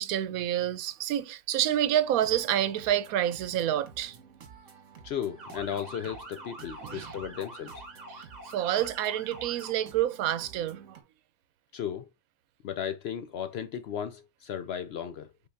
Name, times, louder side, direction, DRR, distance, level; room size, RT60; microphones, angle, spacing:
voice 1, 0.0-4.2 6.8-7.1 8.1-11.0, right 11 dB, 85° right, 1.1 m, -28 dB
sound 1, 2.0-11.0, right 6 dB, 65° right, 1.6 m, -52 dB
voice 2, 5.0-7.8 11.7-12.1 12.6-15.3, left 9 dB, 65° left, 0.6 m, -35 dB
Motor vehicle (road) / Siren, 5.4-9.7, right 1 dB, 30° right, 1.9 m, -45 dB
5.4 x 3.8 x 2.5 m
omnidirectional pair, 1.4 m